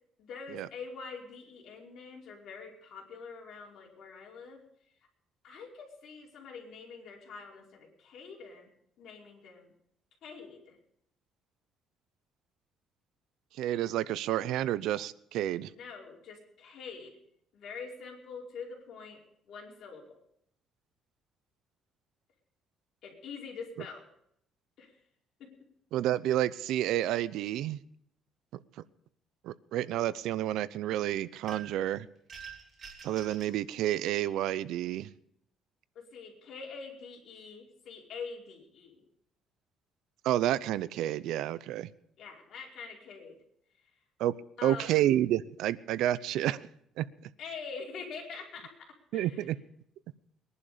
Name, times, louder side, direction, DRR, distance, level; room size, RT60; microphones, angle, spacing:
voice 1, 0.2-4.6 5.4-8.7 9.0-9.7 10.2-10.8 15.7-17.2 17.5-19.2 19.5-20.2 23.0-24.1 24.8-25.0 25.4-25.5 35.9-39.0 42.2-43.4 44.6-45.0 47.4-48.9 49.1-49.5, left 5 dB, 55° left, -2 dB, 5.0 m, -45 dB
voice 2, 13.5-15.7 25.9-27.8 29.4-32.1 33.0-35.1 40.2-41.9 44.2-44.3 44.6-46.7 47.0-47.1 49.1-49.6, right 13 dB, 75° right, 17 dB, 0.6 m, -30 dB
sound 1, 31.5-31.9 32.3-33.6, right 6 dB, 40° right, 3.1 m, -46 dB
22.0 x 11.0 x 5.1 m, 0.72 s
cardioid pair, 150°, 0 cm